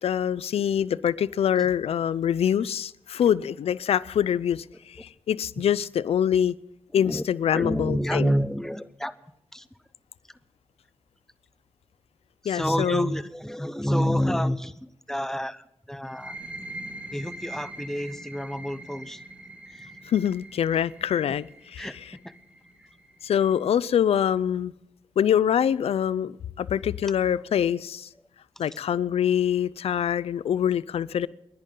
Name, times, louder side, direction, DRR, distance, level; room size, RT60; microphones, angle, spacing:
voice 1, 0.0-6.5 6.9-8.3 12.4-13.1 20.1-21.9 23.2-24.7 25.2-28.1 28.6-31.3, left 9 dB, 80° left, 20 dB, 0.5 m, -25 dB
voice 2, 6.9-7.2 7.5-9.1 9.5-9.7 12.4-16.4 17.1-19.2 19.7-19.9 21.8-22.0 22.2-22.3, equal, 5° left, 13 dB, 1.0 m, -28 dB
sound 1, 16.0-23.5, right 1 dB, 10° right, 4.7 m, -43 dB
29.0 x 11.0 x 3.8 m, 0.83 s
cardioid pair, 60°, 10 cm